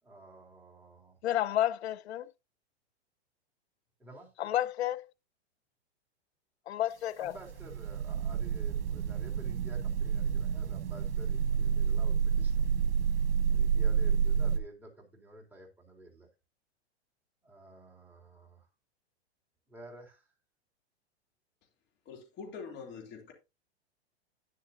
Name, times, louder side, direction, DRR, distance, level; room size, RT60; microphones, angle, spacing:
voice 1, 0.0-1.2 4.0-4.3 7.2-12.9 13.5-16.3 17.4-18.7 19.7-20.3, right 1 dB, 5° right, 3.7 m, -52 dB
voice 2, 1.2-2.3 4.4-5.1 6.7-7.3, left 12 dB, 70° left, 0.8 m, -31 dB
sound 1, 7.2-14.6, right 7 dB, 60° right, 1.7 m, -29 dB
voice 3, 22.0-23.3, left 5 dB, 30° left, 3.1 m, -44 dB
10.5 x 10.0 x 2.8 m
hypercardioid pair, 120°, 33 cm